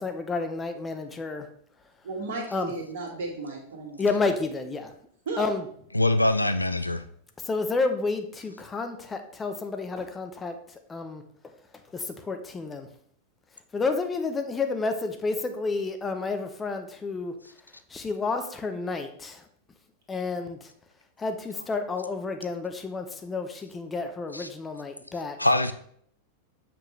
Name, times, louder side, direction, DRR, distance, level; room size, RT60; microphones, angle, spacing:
voice 1, 0.0-1.5 2.5-2.7 4.0-4.9 5.4-5.6 7.4-10.6 10.9-11.2 11.9-12.9 13.7-17.3 17.9-19.4 20.1-20.6 21.2-25.4, left 3 dB, 15° left, 7 dB, 0.7 m, -30 dB
voice 2, 2.0-4.1 5.3-5.5, right 3 dB, 60° right, 0 dB, 2.0 m, -34 dB
voice 3, 5.9-7.0 24.3-24.5 25.4-25.7, left 1 dB, 85° left, 11 dB, 0.5 m, -23 dB
6.8 x 5.9 x 3.2 m, 0.63 s
figure-of-eight pair, 90°, 0 cm